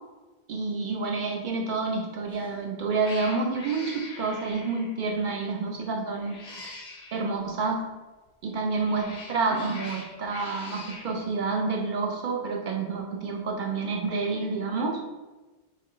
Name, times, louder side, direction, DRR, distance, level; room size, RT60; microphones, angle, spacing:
voice 1, 0.5-6.4 7.1-7.8 8.4-15.0, right 4 dB, 60° right, 0 dB, 0.5 m, -29 dB
Cat, 2.3-2.6 3.0-5.0 6.1-7.2 8.5-11.1, left 2 dB, 50° left, 0.6 m, -43 dB
4.4 x 2.1 x 3.7 m, 1.2 s
omnidirectional pair, 1.2 m